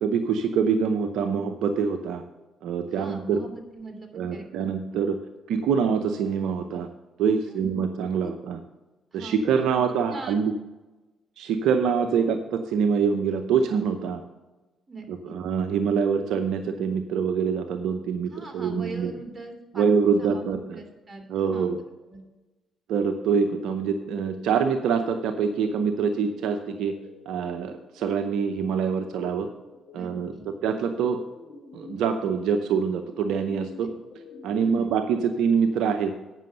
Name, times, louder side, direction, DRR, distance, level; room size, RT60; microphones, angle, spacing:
voice 1, 0.0-2.2 2.6-3.4 4.1-5.2 5.5-6.9 7.2-8.6 9.1-10.5 11.4-14.2 15.1-19.1 19.7-20.8 21.3-21.8 22.9-26.9 27.3-29.5 29.9-30.3 30.6-31.2 31.7-33.9 34.4-36.1, right 6 dB, 75° right, 7 dB, 0.6 m, -25 dB
voice 2, 2.9-5.0 7.4-7.9 8.2-8.3 9.1-9.4 10.1-10.4 14.9-15.3 18.3-19.9 20.2-21.2 21.5-21.7 22.1-22.2 29.9-30.5 33.8-33.9 34.6-35.0, right 2 dB, 25° right, 2 dB, 2.9 m, -41 dB
sound 1, 23.5-34.8, left 3 dB, 65° left, 2.1 m, -48 dB
9.1 x 6.2 x 6.6 m, 1.1 s
hypercardioid pair, 50°, 0 cm